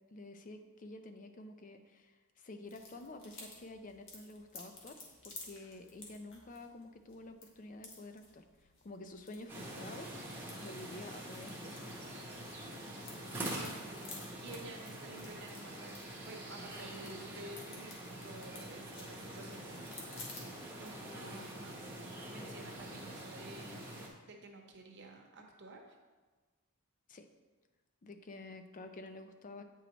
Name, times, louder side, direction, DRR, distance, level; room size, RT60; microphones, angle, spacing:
voice 1, 0.1-8.4 8.8-10.1 10.6-12.1 27.1-27.3 28.0-29.6, left 2 dB, 35° left, 7 dB, 0.4 m, -50 dB
sound 1, 2.6-21.2, left 3 dB, 55° left, 1.5 m, -55 dB
sound 2, 9.5-24.1, right 1 dB, 10° right, 0.9 m, -45 dB
voice 2, 13.3-26.0, right 2 dB, 50° right, 1 dB, 0.9 m, -51 dB
8.9 x 4.6 x 3.0 m, 1.3 s
head